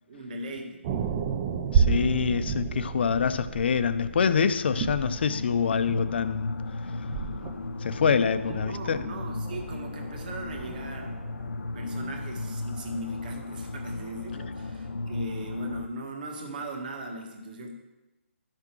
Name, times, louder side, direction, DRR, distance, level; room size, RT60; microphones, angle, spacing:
voice 1, 0.1-1.0 8.4-11.3 11.7-17.7, right 1 dB, 40° right, 1.5 m, -39 dB
sound 1, 0.8-12.2 12.7-12.8, right 6 dB, 20° right, 0.4 m, -32 dB
voice 2, 1.7-6.5 7.8-9.0, left 6 dB, 50° left, 0.5 m, -25 dB
sound 2, 4.6-15.9, left 2 dB, 85° left, 0.8 m, -35 dB
11.5 x 6.1 x 4.5 m
hypercardioid pair, 165°, 7 cm